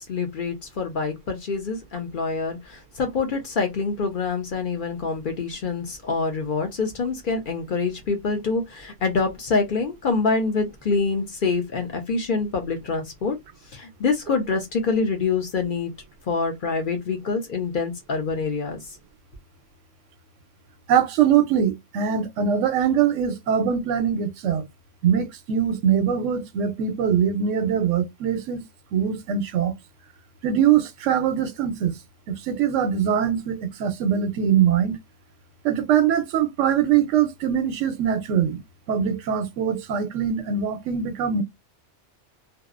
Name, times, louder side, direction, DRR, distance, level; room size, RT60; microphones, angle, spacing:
voice 1, 0.1-13.4 13.7-15.9 16.3-18.8, left 4 dB, 50° left, 0.7 m, -26 dB
voice 2, 20.9-24.7 25.0-28.6 28.9-29.7 30.4-32.0 32.3-35.0 35.6-38.6 38.9-41.4, right 8 dB, 90° right, 0.9 m, -22 dB
2.7 x 2.0 x 2.3 m
omnidirectional pair, 1.2 m